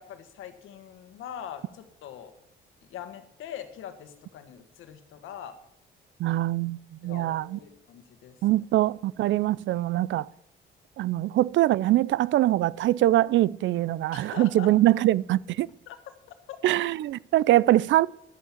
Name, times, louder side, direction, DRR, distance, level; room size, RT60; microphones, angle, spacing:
voice 1, 0.0-2.3 2.9-5.6 7.0-8.6 14.1-14.7 15.9-16.0 16.5-16.6, left 9 dB, 85° left, 1.6 m, -42 dB
voice 2, 6.2-7.6 8.4-10.3 11.0-15.7 16.6-18.1, right 15 dB, 70° right, 0.4 m, -23 dB
11.0 x 8.4 x 8.5 m
cardioid pair, 90°, 20 cm